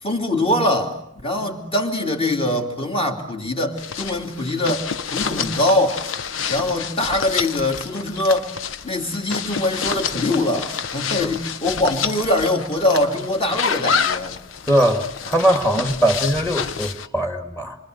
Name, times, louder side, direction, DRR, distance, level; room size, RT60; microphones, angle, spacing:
voice 1, 0.0-6.0 6.5-8.5 8.8-14.4, left 1 dB, 30° left, 2.9 m, -23 dB
sound 1, 3.8-17.1, left 6 dB, 80° left, 1.0 m, -28 dB
voice 2, 14.7-17.8, equal, 10° left, 2.1 m, -20 dB
28.0 x 24.5 x 7.9 m
head